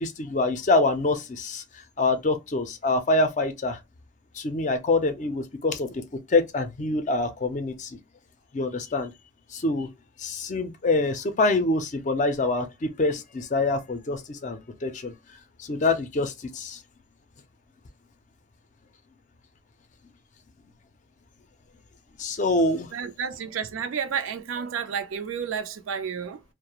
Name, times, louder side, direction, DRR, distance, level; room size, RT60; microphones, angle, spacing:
voice 1, 0.0-1.6 2.0-3.8 4.3-6.0 6.3-8.0 8.5-9.1 9.5-9.9 10.2-15.1 15.6-16.8 22.2-22.9, left 2 dB, 40° left, 0.4 m, -25 dB
voice 2, 22.9-26.4, right 7 dB, 85° right, 0.4 m, -31 dB
2.4 x 2.1 x 2.8 m
head